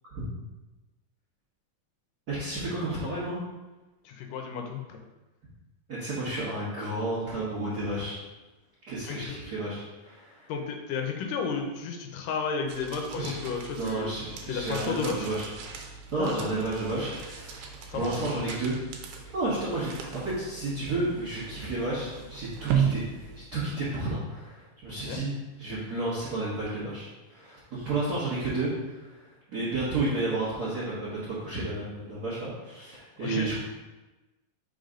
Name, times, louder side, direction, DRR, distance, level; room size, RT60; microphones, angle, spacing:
voice 1, 2.3-3.4 5.9-8.2 8.9-10.5 13.2-13.3 13.8-15.7 16.1-18.8 19.2-25.3 25.6-29.2 29.5-33.6, right 2 dB, 45° right, -10 dB, 1.3 m, -32 dB
voice 2, 4.1-5.0 9.1-9.4 10.5-14.1 14.5-15.3 16.2-16.4 17.9-18.2 25.0-25.2 33.2-33.5, left 5 dB, 85° left, 3 dB, 2.3 m, -33 dB
sound 1, 12.7-24.0, right 7 dB, 85° right, 2.4 m, -36 dB
5.3 x 3.9 x 5.0 m, 1.1 s
omnidirectional pair, 3.9 m